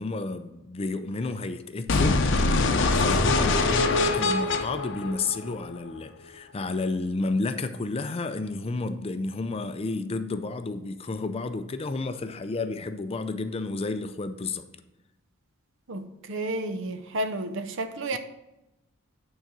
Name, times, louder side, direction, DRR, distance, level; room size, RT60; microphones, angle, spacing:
voice 1, 0.0-14.6 18.1-18.2, left 3 dB, 30° left, 10 dB, 0.4 m, -31 dB
sound 1, 1.9-5.9, left 3 dB, 60° left, 0.7 m, -23 dB
voice 2, 15.9-18.2, right 1 dB, 65° right, 10 dB, 0.7 m, -31 dB
9.0 x 4.0 x 6.0 m, 0.94 s
head